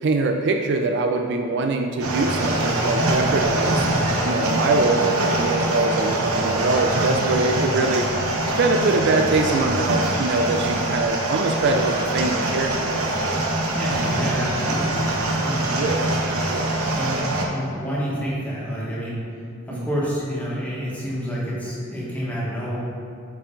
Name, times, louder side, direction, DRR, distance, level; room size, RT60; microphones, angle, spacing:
voice 1, 0.0-3.9 4.2-8.0 8.6-13.3 15.7-16.8 19.7-19.9, right 3 dB, 55° right, 4 dB, 0.4 m, -23 dB
sound 1, 2.0-17.4, right 1 dB, 75° right, 0.9 m, -24 dB
voice 2, 7.4-7.9 13.7-15.1 15.4-15.7 16.9-17.2 17.5-19.2 19.7-22.8, equal, 5° left, -7 dB, 1.5 m, -28 dB
8.4 x 4.4 x 3.9 m, 2.5 s
head